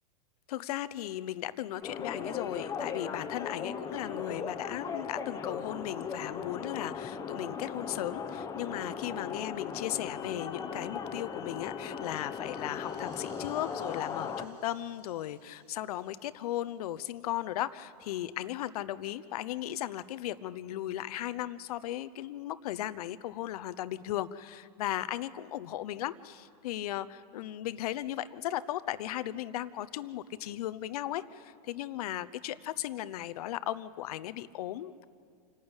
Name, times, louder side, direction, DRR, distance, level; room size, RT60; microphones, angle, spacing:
voice 1, 0.5-35.0, left 13 dB, 60° left, 15 dB, 0.9 m, -36 dB
sound 1, 1.8-14.4, left 6 dB, 15° left, 1.2 m, -38 dB
sound 2, 12.1-17.5, right 3 dB, 90° right, 7.2 m, -63 dB
27.5 x 12.0 x 8.9 m, 2.2 s
hypercardioid pair, 130°, 21 cm